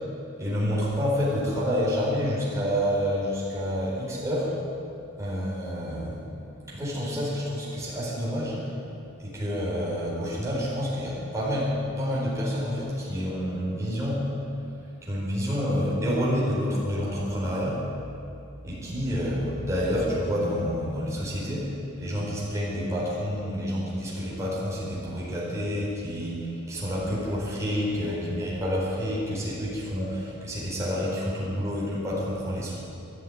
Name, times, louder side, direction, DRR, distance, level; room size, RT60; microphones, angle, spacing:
voice 1, 0.4-4.5 5.2-6.2 6.7-8.7 9.2-14.3 15.0-17.9 18.6-32.7, equal, 15° right, -7 dB, 4.6 m, -28 dB
12.5 x 11.0 x 9.2 m, 2.6 s
head